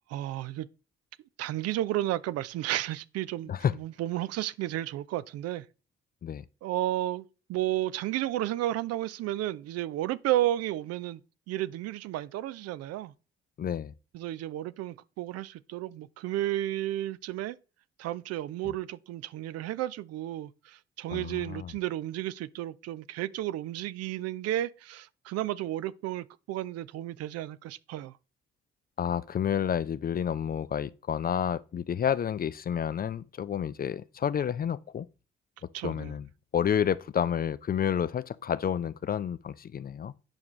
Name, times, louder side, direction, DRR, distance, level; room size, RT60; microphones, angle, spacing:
voice 1, 0.1-0.7 1.4-5.7 6.6-7.2 7.5-11.2 11.5-13.1 14.1-17.6 18.0-28.1 35.7-36.1, right 14 dB, 55° right, 0.5 m, -32 dB
voice 2, 13.6-13.9 21.1-21.7 29.0-35.1 35.8-36.3 36.5-40.1, left 8 dB, 30° left, 0.4 m, -30 dB
8.8 x 5.8 x 3.1 m
figure-of-eight pair, 40°, 30 cm